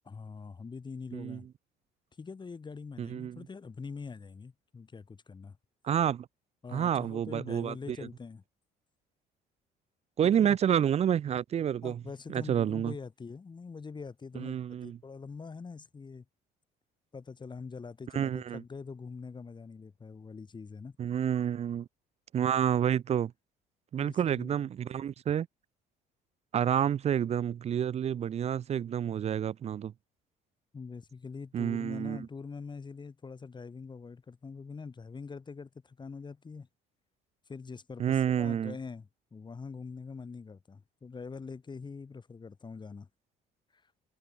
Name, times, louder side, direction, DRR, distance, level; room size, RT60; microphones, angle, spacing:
voice 1, 0.0-1.4 2.2-5.6 6.6-8.4 10.2-10.6 11.8-16.2 17.1-21.0 24.0-24.6 30.7-36.7 37.5-43.1 43.7-43.8, left 5 dB, 25° left, 4.4 m, -44 dB
voice 2, 3.0-3.4 5.8-6.3 6.7-8.0 10.2-12.0 12.3-12.9 14.4-15.0 18.1-18.6 21.0-21.9 22.3-23.3 23.9-25.5 26.5-29.9 31.5-32.3 38.0-38.8, right 9 dB, 40° right, 0.6 m, -29 dB
cardioid pair, 110°, 17 cm